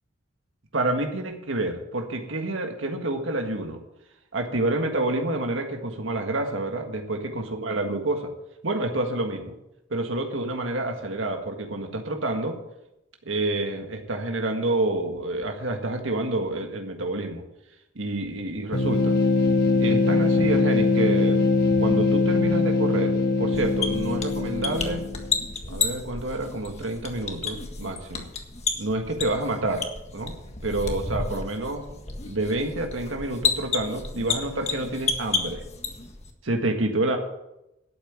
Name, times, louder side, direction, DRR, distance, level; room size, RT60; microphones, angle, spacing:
voice 1, 0.7-3.8 4.3-8.3 8.6-9.5 9.9-12.6 13.2-17.4 17.9-19.2 19.8-21.5 21.8-25.0 25.7-28.3 28.8-29.9 30.1-30.3 30.6-31.9 32.2-35.6 36.4-37.2, right 2 dB, 90° right, 3 dB, 1.7 m, -28 dB
sound 1, 18.7-25.4, left 3 dB, 55° left, 1.3 m, -22 dB
whiteboard squeak, 23.5-36.3, left 4 dB, 35° left, 1.6 m, -31 dB
12.0 x 8.8 x 7.2 m, 0.88 s
head